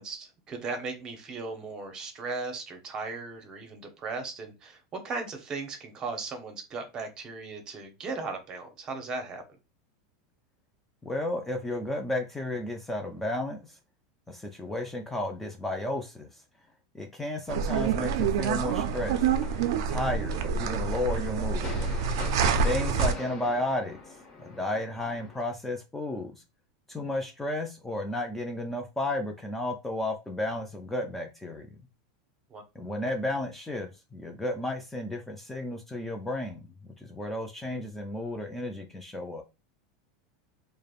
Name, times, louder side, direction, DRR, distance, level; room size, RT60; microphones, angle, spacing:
voice 1, 0.0-9.4 23.2-23.3 32.5-32.6, right 3 dB, 30° right, 0.7 m, -37 dB
voice 2, 11.0-13.8 14.3-16.4 16.9-19.3 19.9-21.7 22.6-24.2 24.5-26.4 26.9-31.8 32.7-39.4, left 1 dB, 10° left, 0.4 m, -33 dB
sound 1, 17.5-23.1, right 6 dB, 70° right, 0.4 m, -27 dB
sound 2, 18.9-25.4, left 3 dB, 30° left, 0.9 m, -44 dB
3.2 x 2.0 x 2.3 m
supercardioid pair, 125°, 2 cm